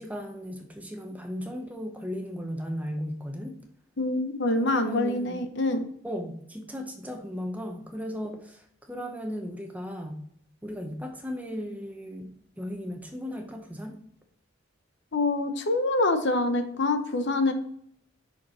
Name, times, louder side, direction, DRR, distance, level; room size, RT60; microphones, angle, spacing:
voice 1, 0.0-3.5 4.5-5.4 6.0-10.2 10.6-14.0, equal, 5° right, 3 dB, 0.8 m, -36 dB
voice 2, 4.0-5.8 15.1-17.5, left 2 dB, 60° left, 8 dB, 0.8 m, -25 dB
6.0 x 5.3 x 4.2 m, 0.65 s
head